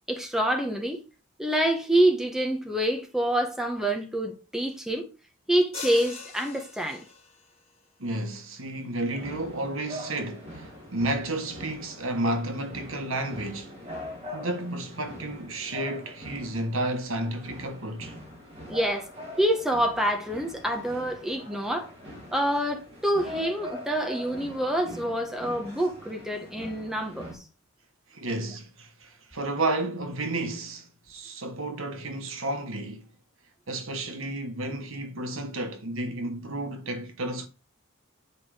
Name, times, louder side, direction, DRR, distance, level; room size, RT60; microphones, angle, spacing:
voice 1, 0.1-1.0 1.4-5.1 5.5-7.0 18.7-19.1 19.4-21.9 22.3-27.4, right 1 dB, ahead, 1.3 m, -26 dB
sound 1, 5.7-7.5, left 4 dB, 30° left, 3.3 m, -41 dB
voice 2, 8.0-13.7 14.3-18.2 28.1-33.1 33.7-37.5, right 1 dB, 75° right, 1.5 m, -32 dB
sound 2, 9.2-27.4, left 1 dB, 30° right, 5.5 m, -42 dB
9.7 x 5.1 x 5.0 m
head